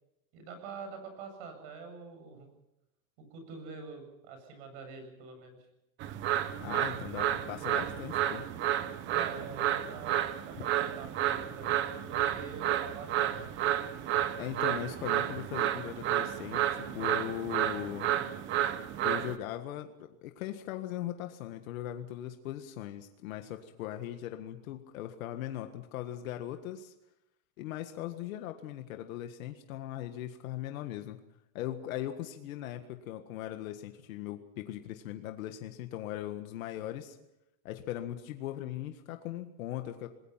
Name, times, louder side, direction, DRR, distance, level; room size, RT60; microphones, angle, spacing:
voice 1, 0.3-2.5 3.2-5.6 9.0-13.5, right 5 dB, 55° right, 7 dB, 7.7 m, -45 dB
sound 1, 6.0-19.4, right 11 dB, 30° right, 0.9 m, -31 dB
voice 2, 6.6-8.4 14.4-18.1 19.0-26.9 27.6-31.2 31.5-37.2 37.6-40.1, left 12 dB, 80° left, 6 dB, 1.7 m, -39 dB
27.5 x 21.0 x 5.8 m, 0.88 s
supercardioid pair, 175°, 40 cm